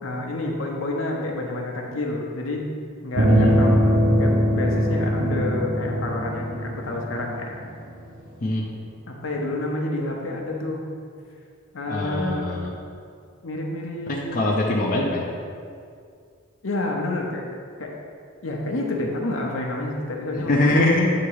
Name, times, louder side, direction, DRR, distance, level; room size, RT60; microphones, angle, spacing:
voice 1, 0.0-2.7 3.0-7.6 9.1-10.8 11.7-12.6 13.4-14.4 16.6-17.5 17.8-18.0 18.4-20.8, left 2 dB, 70° left, 0 dB, 0.9 m, -29 dB
sound 1, 3.2-8.0, equal, 55° right, 0.6 m, -21 dB
voice 2, 3.3-3.8 8.4-8.7 11.9-12.7 14.1-15.2 20.4-21.1, left 2 dB, 40° left, -3 dB, 0.6 m, -22 dB
8.4 x 2.9 x 4.7 m, 2.2 s
head